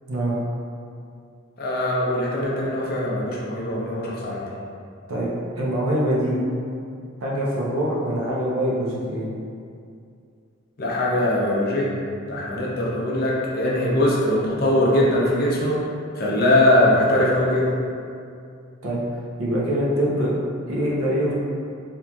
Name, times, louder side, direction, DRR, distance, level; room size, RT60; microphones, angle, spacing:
voice 1, 1.6-4.4 10.8-11.9 12.2-15.8 16.2-17.7, left 1 dB, 45° left, -4 dB, 0.5 m, -21 dB
voice 2, 5.5-6.4 7.2-9.3 18.8-19.0 19.4-20.3 20.7-21.3, equal, 80° right, -5 dB, 0.6 m, -24 dB
2.8 x 2.5 x 2.2 m, 2.4 s
head